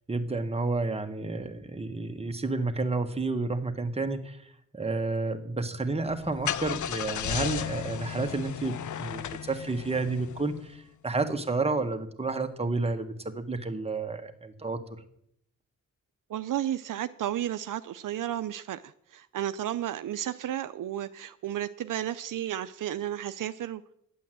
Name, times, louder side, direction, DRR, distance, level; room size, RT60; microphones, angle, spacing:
voice 1, 0.1-15.0, right 3 dB, 20° right, 6 dB, 1.4 m, -31 dB
Car / Engine starting, 6.1-10.7, left 9 dB, 65° left, 0.6 m, -35 dB
voice 2, 16.3-23.8, right 11 dB, 75° right, 12 dB, 0.6 m, -33 dB
11.0 x 8.4 x 7.7 m, 0.72 s
cardioid pair, 75°, 32 cm